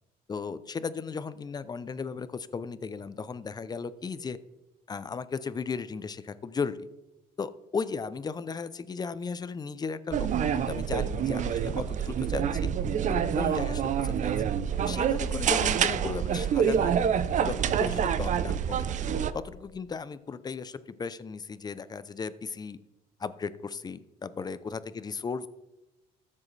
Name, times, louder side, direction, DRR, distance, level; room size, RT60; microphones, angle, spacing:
voice 1, 0.3-4.4 4.9-6.9 7.4-12.7 13.1-14.3 14.8-17.1 17.4-18.9 19.3-22.8 23.2-25.5, left 5 dB, 25° left, 15 dB, 0.5 m, -36 dB
sound 1, 10.1-19.3, right 8 dB, 45° right, 0.5 m, -27 dB
14.0 x 7.5 x 3.3 m, 0.98 s
cardioid pair, 110°, 17 cm